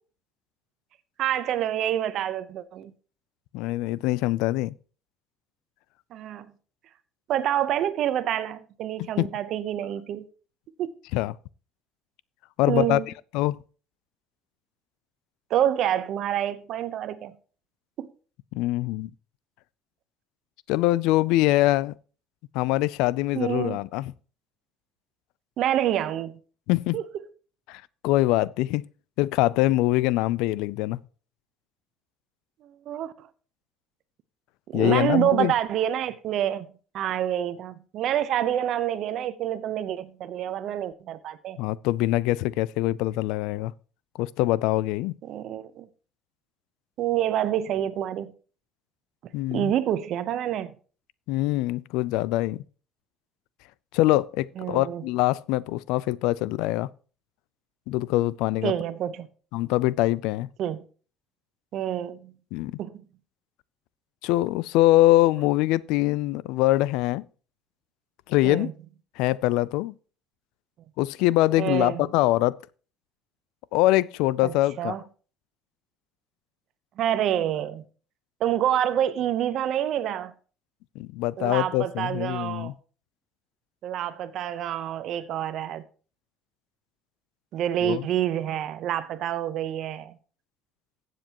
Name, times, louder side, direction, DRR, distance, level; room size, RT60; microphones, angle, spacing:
voice 1, 1.2-2.9 6.1-6.5 7.3-10.2 10.8-10.9 12.7-13.1 15.5-17.4 18.0-18.1 23.4-23.8 25.6-26.4 26.9-27.0 32.6-33.3 34.7-36.7 36.9-41.6 45.2-45.9 47.0-48.3 49.5-50.7 54.6-55.0 58.6-59.3 60.6-60.8 61.7-62.3 62.8-63.0 68.4-68.7 71.6-72.1 74.4-75.0 77.0-77.9 78.4-80.3 81.4-82.7 83.8-85.8 87.5-90.2, right 11 dB, 60° right, 0.8 m, -27 dB
voice 2, 3.5-4.7 9.0-9.3 11.1-11.3 12.6-13.0 13.3-13.6 18.5-19.1 20.7-21.9 22.5-24.1 26.7-27.0 27.7-28.9 29.2-31.0 34.7-35.5 41.6-43.7 44.2-45.1 49.3-49.7 51.3-52.6 53.9-56.9 57.9-58.7 59.5-60.5 62.5-62.8 64.2-67.2 68.3-68.7 69.2-69.9 71.0-72.6 73.7-74.9 81.0-82.7 87.8-88.0, left 17 dB, 80° left, 0.4 m, -23 dB
15.0 x 7.6 x 3.0 m
cardioid pair, 120°, 0 cm